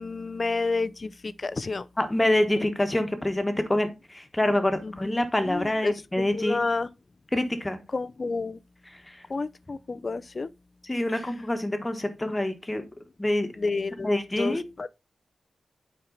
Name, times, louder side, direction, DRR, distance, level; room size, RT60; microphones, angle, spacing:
voice 1, 0.0-1.9 4.8-4.9 5.4-6.9 7.9-8.6 9.3-10.5 13.6-14.1 14.4-14.9, left 3 dB, 40° left, 0.5 m, -30 dB
voice 2, 2.0-6.6 7.3-7.8 8.9-9.2 10.8-12.8 13.2-13.5 14.0-14.6, left 1 dB, 15° left, 1.3 m, -26 dB
8.8 x 4.5 x 3.9 m
wide cardioid pair, 100°, 0 cm